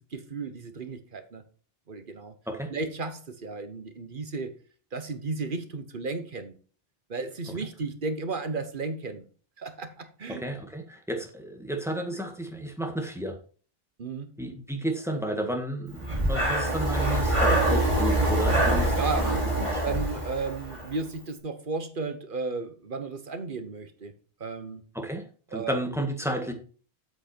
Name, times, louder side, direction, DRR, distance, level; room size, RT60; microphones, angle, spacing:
voice 1, 0.1-1.4 1.9-2.3 2.7-4.5 4.9-6.5 7.1-9.2 9.6-10.4 14.0-14.3 17.7-17.9 19.0-24.1 24.4-24.8 25.5-25.8, right 3 dB, 55° right, 8 dB, 1.3 m, -34 dB
voice 2, 10.3-13.4 14.4-19.4 19.7-20.1 24.9-26.5, right 1 dB, 5° right, 3 dB, 1.7 m, -32 dB
Breathing, 16.0-20.9, right 1 dB, 30° right, 3.6 m, -25 dB
8.1 x 7.7 x 4.4 m, 0.40 s
omnidirectional pair, 1.0 m